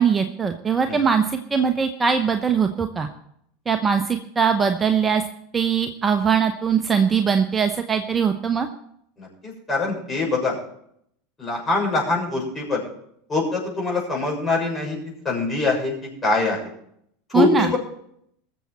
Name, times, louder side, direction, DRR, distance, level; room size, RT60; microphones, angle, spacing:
voice 1, 0.0-3.1 3.7-5.2 5.5-8.7 17.3-17.7, right 6 dB, 20° right, 6 dB, 0.9 m, -21 dB
voice 2, 9.2-10.6 11.4-12.8 13.3-15.0 15.2-15.9 16.2-16.6 17.3-17.8, left 3 dB, 20° left, -2 dB, 6.7 m, -23 dB
21.0 x 7.4 x 4.4 m, 0.71 s
figure-of-eight pair, 80°, 0 cm